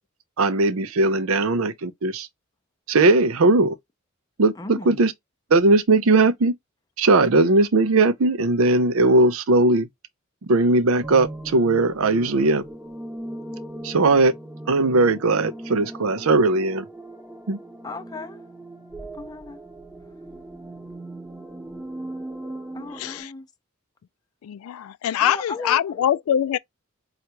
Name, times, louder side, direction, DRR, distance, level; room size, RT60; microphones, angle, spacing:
voice 1, 0.4-2.3 2.9-3.7 4.4-5.1 5.5-6.5 7.0-9.9 10.5-12.6 13.8-14.3 14.7-16.8 17.5-17.6, right 2 dB, 75° right, 0.6 m, -19 dB
voice 2, 4.6-5.0 17.8-18.4 19.1-19.6 22.8-23.4 25.2-25.8, left 3 dB, 20° left, 0.5 m, -35 dB
sound 1, 11.0-23.2, right 1 dB, 5° right, 0.8 m, -38 dB
voice 3, 22.9-23.3 24.4-26.6, left 10 dB, 75° left, 0.3 m, -23 dB
4.5 x 2.4 x 2.8 m
head